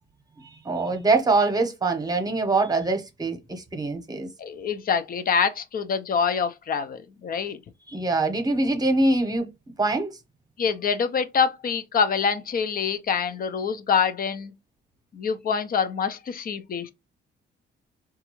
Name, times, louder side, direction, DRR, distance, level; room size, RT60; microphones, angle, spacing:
voice 1, 0.4-4.3 7.9-9.5 9.8-10.1, right 3 dB, 20° right, 0.9 m, -24 dB
voice 2, 4.4-7.6 10.6-14.5 15.1-16.9, left 6 dB, 45° left, 0.6 m, -25 dB
3.8 x 2.4 x 3.0 m
cardioid pair, 90°, 20 cm